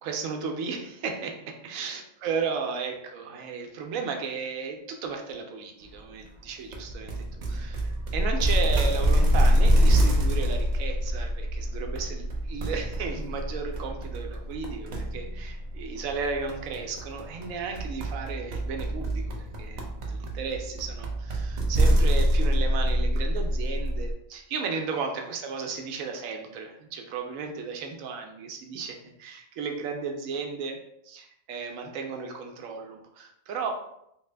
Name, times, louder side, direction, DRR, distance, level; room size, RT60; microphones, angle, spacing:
voice 1, 0.0-33.7, right 5 dB, 85° right, 4 dB, 1.0 m, -34 dB
sound 1, 6.7-24.1, equal, 60° right, 0.4 m, -26 dB
3.1 x 2.1 x 3.2 m, 0.76 s
omnidirectional pair, 1.3 m